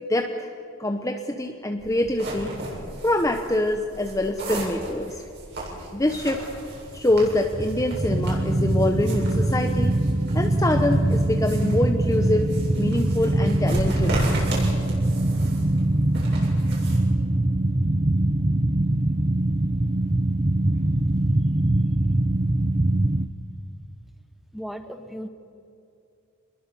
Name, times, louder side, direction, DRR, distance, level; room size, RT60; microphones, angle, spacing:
voice 1, 0.1-0.5 0.8-2.5 3.0-5.2 5.9-6.4 6.9-10.0 10.3-12.5 12.7-14.3, left 1 dB, 15° left, 4 dB, 1.0 m, -25 dB
sound 1, 1.8-17.0, right 1 dB, 55° right, 7.6 m, -36 dB
sound 2, 6.9-23.3, right 1 dB, 25° right, 0.8 m, -23 dB
voice 2, 24.5-25.3, equal, ahead, 7 dB, 1.5 m, -36 dB
27.0 x 21.5 x 7.0 m, 2.6 s
head